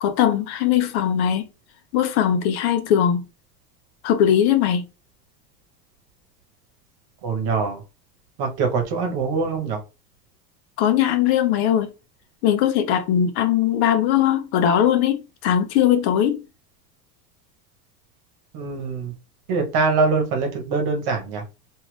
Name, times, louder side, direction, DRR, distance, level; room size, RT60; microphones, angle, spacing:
voice 1, 0.0-1.5 1.9-3.2 4.0-4.8 10.8-11.9 12.4-16.4, left 10 dB, 55° left, 0.7 m, -20 dB
voice 2, 7.2-7.8 8.4-9.8 18.5-19.1 19.5-21.4, right 4 dB, 50° right, 1.2 m, -23 dB
2.7 x 2.4 x 3.2 m
hypercardioid pair, 95°, 48 cm